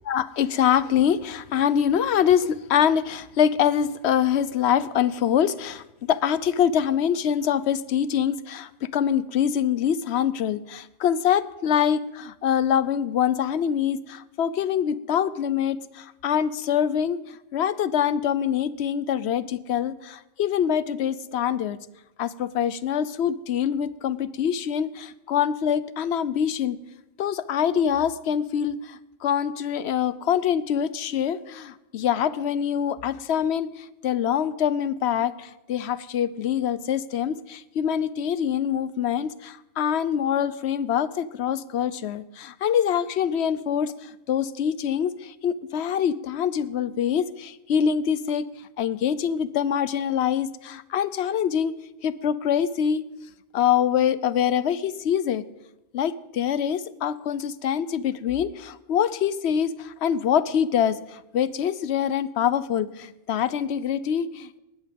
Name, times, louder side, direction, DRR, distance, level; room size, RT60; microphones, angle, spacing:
voice 1, 0.1-21.8 22.2-26.8 27.2-48.5 48.8-51.7 52.0-53.0 53.5-55.4 55.9-64.6, left 8 dB, 60° left, 17 dB, 1.0 m, -24 dB
19.0 x 14.0 x 5.2 m, 0.95 s
omnidirectional pair, 1.3 m